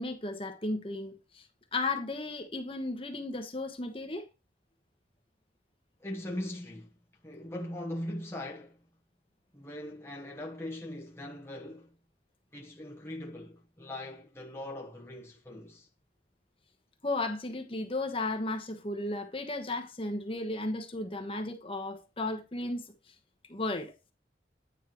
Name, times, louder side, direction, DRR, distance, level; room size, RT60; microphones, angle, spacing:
voice 1, 0.0-1.4 1.7-4.3 17.0-22.9 23.5-23.9, left 2 dB, 30° left, 1.2 m, -34 dB
voice 2, 6.0-7.0 7.2-8.8 9.5-11.9 12.5-15.9, left 1 dB, 15° left, 1.1 m, -40 dB
9.8 x 5.5 x 3.1 m
head